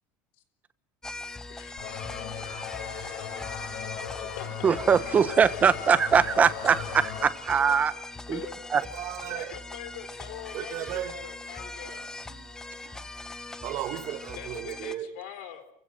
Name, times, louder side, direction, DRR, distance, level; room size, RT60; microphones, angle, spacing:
sound 1, 1.0-15.0, left 2 dB, 10° left, 1.1 m, -41 dB
voice 1, 1.5-2.0 4.2-4.8 8.3-8.6 9.3-12.1 14.3-15.7, left 11 dB, 85° left, 3.9 m, -43 dB
sound 2, 1.8-7.3, left 9 dB, 65° left, 4.7 m, -38 dB
voice 2, 4.6-7.9 8.3-8.4 8.7-8.8, right 6 dB, 25° right, 1.1 m, -22 dB
voice 3, 8.9-9.6 10.5-11.3 11.8-11.9 12.3-13.1 13.6-15.2, right 12 dB, 55° right, 1.6 m, -36 dB
29.0 x 16.0 x 7.7 m
cardioid pair, 135°, 6 cm